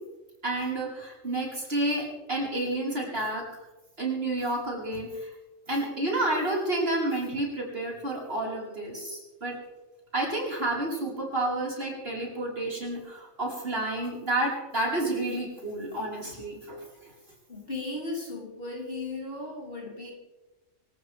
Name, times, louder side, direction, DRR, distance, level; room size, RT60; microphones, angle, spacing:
voice 1, 0.4-3.5 4.0-5.3 5.7-9.6 10.1-16.8, right 1 dB, 50° right, -4 dB, 5.7 m, -30 dB
voice 2, 17.5-20.1, left 2 dB, 45° left, -4 dB, 5.4 m, -36 dB
26.5 x 13.5 x 3.7 m, 1.1 s
omnidirectional pair, 1.4 m